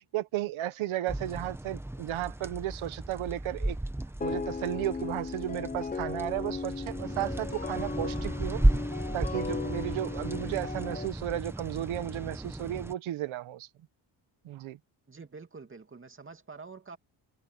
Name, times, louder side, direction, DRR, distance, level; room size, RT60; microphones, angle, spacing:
voice 1, 0.0-3.8 4.2-8.6 9.1-13.7 14.4-14.8, right 13 dB, 90° right, 1.3 m, -34 dB
sound 1, 1.1-12.9, right 1 dB, 5° right, 1.1 m, -34 dB
sound 2, 4.2-11.1, left 4 dB, 20° left, 0.8 m, -37 dB
voice 2, 15.1-17.0, right 4 dB, 25° right, 2.6 m, -47 dB
cardioid pair, 110°, 47 cm